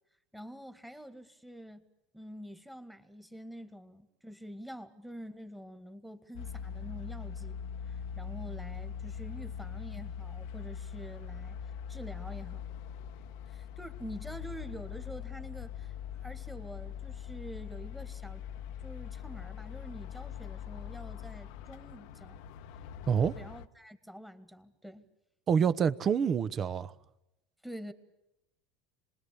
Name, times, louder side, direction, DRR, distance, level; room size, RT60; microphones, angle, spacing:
voice 1, 0.3-1.9 2.1-7.6 7.9-11.6 11.9-12.6 13.5-15.9 16.2-18.5 18.8-22.4 23.4-25.1 27.6-27.9, equal, ahead, 2.1 m, -46 dB
sound 1, 6.3-23.7, left 8 dB, 70° left, 1.0 m, -42 dB
voice 2, 23.1-23.4 25.5-26.9, right 7 dB, 35° right, 1.1 m, -27 dB
26.5 x 20.5 x 8.5 m
supercardioid pair, 115°, 0 cm